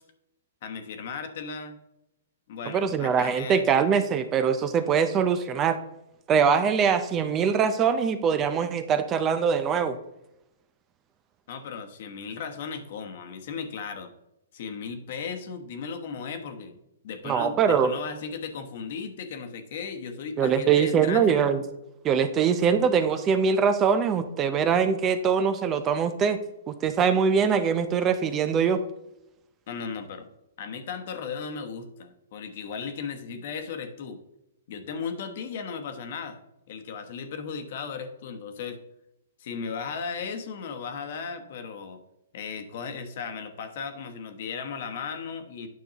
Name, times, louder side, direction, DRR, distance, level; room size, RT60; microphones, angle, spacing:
voice 1, 0.6-1.8 2.5-3.6 11.5-14.1 14.5-16.8 17.0-21.5 29.7-30.3 30.6-34.2 34.7-36.4 36.7-38.8 39.4-42.0 42.3-45.7, left 5 dB, 55° left, 7 dB, 1.1 m, -36 dB
voice 2, 2.7-5.8 6.3-10.0 17.2-17.9 20.4-21.6 22.0-26.4 26.7-28.8, right 6 dB, 20° right, 10 dB, 0.5 m, -23 dB
9.3 x 6.2 x 2.9 m, 0.89 s
hypercardioid pair, 150°, 0 cm